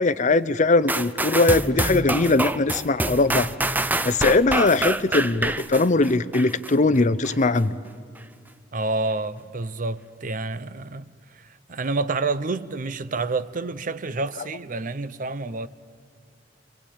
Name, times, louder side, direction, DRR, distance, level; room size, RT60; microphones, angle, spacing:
voice 1, 0.0-3.5 4.0-7.8, left 3 dB, 40° left, 0.7 m, -20 dB
sound 1, 0.9-6.7 7.2-7.3, right 2 dB, 10° right, 0.6 m, -26 dB
voice 2, 8.7-11.1 11.4-15.7, right 3 dB, 45° right, 0.7 m, -28 dB
27.5 x 24.0 x 8.7 m
head